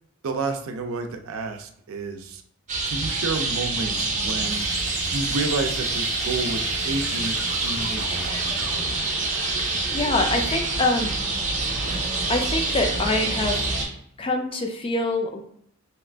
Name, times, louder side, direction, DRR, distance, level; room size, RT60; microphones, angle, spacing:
voice 1, 0.2-2.4 2.8-4.7 5.1-8.4, right 3 dB, 90° right, 5 dB, 0.5 m, -30 dB
sound 1, 2.7-13.9, right 3 dB, 35° right, 0.6 m, -26 dB
sound 2, 4.0-9.0, left 3 dB, 70° left, 0.6 m, -39 dB
voice 2, 9.6-11.1 12.3-13.6 14.2-15.4, left 2 dB, 25° left, 4 dB, 0.4 m, -25 dB
2.9 x 2.4 x 3.3 m, 0.69 s
head